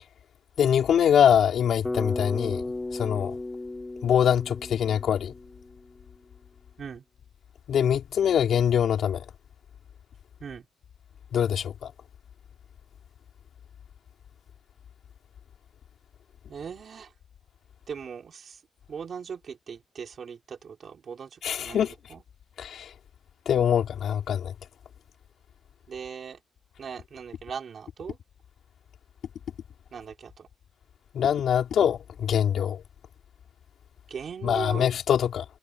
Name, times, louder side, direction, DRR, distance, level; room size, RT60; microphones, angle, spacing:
voice 1, 0.6-3.4 4.0-5.3 7.7-9.2 11.3-11.9 21.4-21.9 22.6-22.9 23.4-24.5 31.1-32.8 34.4-35.4, left 9 dB, 65° left, 4.7 m, -24 dB
Bass guitar, 1.8-6.0, left 2 dB, 15° left, 7.3 m, -35 dB
voice 2, 16.5-17.1 17.9-18.6 18.9-21.8 22.1-22.2 25.9-26.4 26.8-28.2 29.9-30.5 34.1-34.9, right 6 dB, 45° right, 4.5 m, -39 dB
wide cardioid pair, 170°, 0 cm